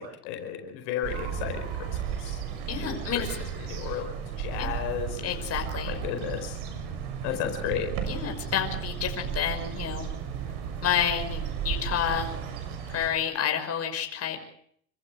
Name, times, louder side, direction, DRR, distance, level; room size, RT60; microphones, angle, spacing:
voice 1, 0.0-2.4 2.7-3.0 3.7-4.1 4.4-5.3 5.8-6.6 7.2-7.9, left 9 dB, 75° left, 5 dB, 4.9 m, -33 dB
sound 1, 1.0-13.1, right 7 dB, 75° right, 6.9 m, -34 dB
voice 2, 2.7-3.3 4.6-4.7 5.2-6.0 8.0-10.1 10.8-12.3 12.9-14.4, left 8 dB, 45° left, 5 dB, 5.7 m, -29 dB
28.5 x 15.0 x 8.1 m, 0.66 s
hypercardioid pair, 85°, 35 cm